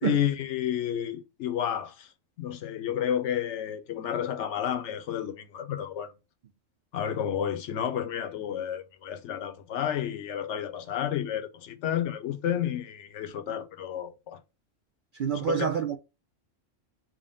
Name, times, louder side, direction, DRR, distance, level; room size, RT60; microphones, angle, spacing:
voice 1, 0.0-2.1 2.4-6.1 6.9-14.4 15.5-15.7, left 10 dB, 70° left, 0.9 m, -31 dB
voice 2, 15.2-16.0, right 7 dB, 60° right, 0.5 m, -27 dB
3.7 x 2.1 x 3.6 m
omnidirectional pair, 1.3 m